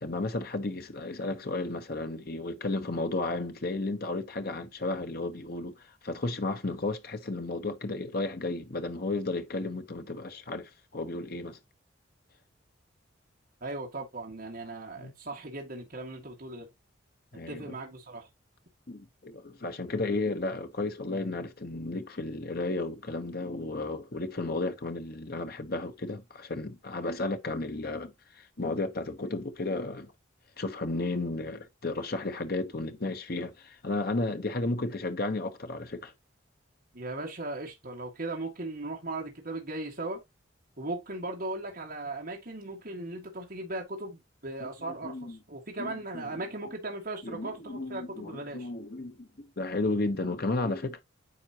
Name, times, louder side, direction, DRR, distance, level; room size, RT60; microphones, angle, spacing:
voice 1, 0.0-11.6 15.0-15.1 17.3-17.8 18.9-30.1 30.6-36.1 44.6-44.7 45.0-45.4 45.8-46.4 47.2-51.0, left 2 dB, 50° left, 1.0 m, -33 dB
voice 2, 13.6-16.7 17.5-18.3 36.9-40.2 40.8-44.2 44.4-48.7, right 2 dB, 50° right, 1.9 m, -38 dB
9.6 x 4.1 x 2.9 m
head